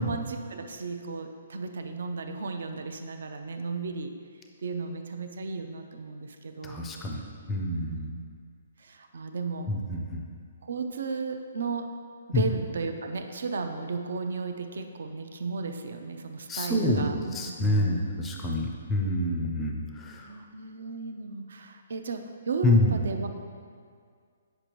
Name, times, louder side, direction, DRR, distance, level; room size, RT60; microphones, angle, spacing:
voice 1, 0.0-4.1 4.6-6.8 7.7-8.3 8.8-9.7 10.6-11.9 12.3-18.0 20.2-23.3, right 4 dB, 60° right, 7 dB, 0.5 m, -35 dB
voice 2, 6.6-7.2 7.5-8.1 9.7-10.2 12.3-12.4 16.5-17.1 17.3-20.3 22.6-23.0, left 1 dB, 5° left, 0 dB, 0.4 m, -27 dB
8.3 x 6.7 x 3.0 m, 2.1 s
hypercardioid pair, 180°, 0 cm